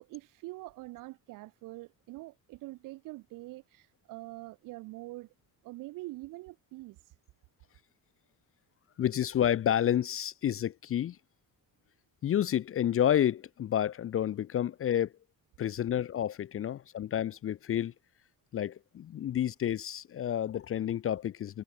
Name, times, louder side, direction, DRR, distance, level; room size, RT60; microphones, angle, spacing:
voice 1, 0.0-5.3 5.6-7.2, right 20 dB, 85° right, 2.3 m, -45 dB
voice 2, 9.0-11.2 12.2-15.1 15.6-17.9 18.5-21.6, left 10 dB, 45° left, 0.5 m, -30 dB
supercardioid pair, 60°, 31 cm